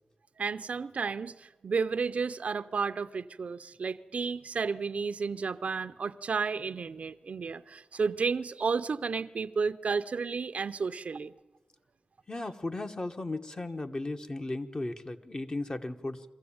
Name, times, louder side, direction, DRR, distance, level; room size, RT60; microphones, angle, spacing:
voice 1, 0.4-11.3, right 5 dB, 75° right, 11 dB, 0.7 m, -32 dB
voice 2, 12.3-16.2, left 2 dB, 40° left, 5 dB, 1.3 m, -36 dB
23.5 x 15.0 x 8.8 m, 1.1 s
cardioid pair, 60°, 2 cm